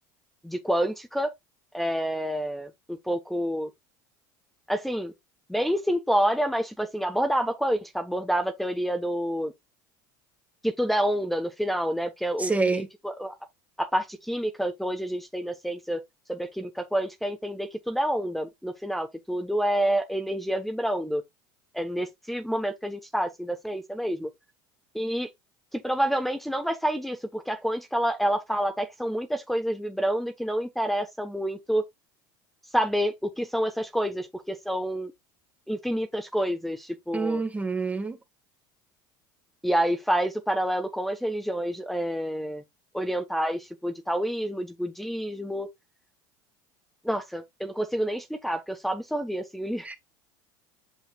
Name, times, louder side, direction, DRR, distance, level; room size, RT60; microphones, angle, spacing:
voice 1, 0.4-1.3 1.7-3.7 4.7-5.1 5.5-9.5 10.6-13.4 13.8-16.0 16.3-21.2 21.7-24.3 24.9-25.3 25.7-31.8 32.7-35.1 35.7-37.4 39.6-42.6 42.9-45.7 47.0-49.9, equal, ahead, 1.1 m, -28 dB
voice 2, 12.4-12.9 37.1-38.2 49.8-50.0, right 3 dB, 15° right, 1.6 m, -27 dB
8.4 x 5.6 x 2.4 m
supercardioid pair, 105°, 11 cm